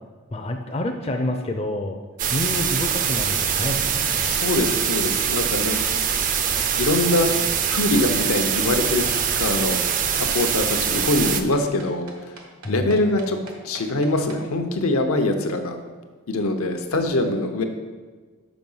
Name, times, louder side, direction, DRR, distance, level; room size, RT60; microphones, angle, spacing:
voice 1, 0.3-2.0 2.3-4.3 12.6-12.9, left 1 dB, 30° left, 3 dB, 0.4 m, -28 dB
sound 1, 2.2-11.4, right 7 dB, 40° right, 0.4 m, -23 dB
voice 2, 4.2-5.8 6.8-7.3 7.7-9.8 10.1-12.1 12.7-13.4 13.6-15.8 16.3-17.6, left 2 dB, 85° left, 6 dB, 0.7 m, -23 dB
sound 2, 6.5-14.4, right 2 dB, 85° right, 1.2 m, -43 dB
6.1 x 4.8 x 5.4 m, 1.4 s
head